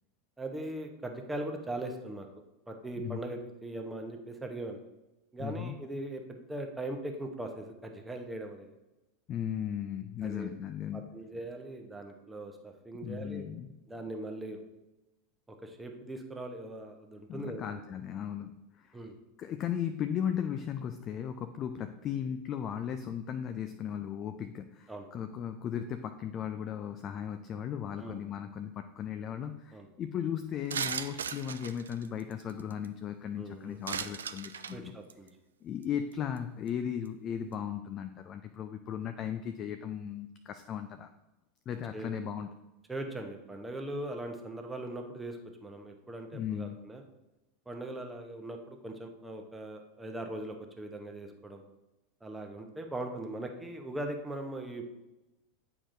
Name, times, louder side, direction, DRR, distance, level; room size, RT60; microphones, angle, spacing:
voice 1, 0.4-2.3 2.7-4.8 5.3-8.7 10.2-10.5 10.9-13.4 13.9-14.6 15.5-17.8 18.9-19.2 24.9-25.1 28.0-28.2 29.7-29.9 33.4-33.8 34.7-35.3 41.9-42.1 42.9-47.0 47.7-51.6 52.2-54.8, right 1 dB, 10° right, 3 dB, 0.9 m, -40 dB
voice 2, 5.4-5.8 9.3-11.1 13.0-13.7 17.3-19.0 19.4-34.9 35.6-41.1 41.7-42.5 46.3-46.8, left 9 dB, 35° left, 8 dB, 0.4 m, -36 dB
sound 1, 30.7-32.9 33.9-34.8 35.1-35.3 35.8-35.9 36.1-36.4 36.7-36.8, right 7 dB, 75° right, 0.3 m, -37 dB
8.6 x 4.8 x 2.7 m, 1.0 s
figure-of-eight pair, 85°, 0 cm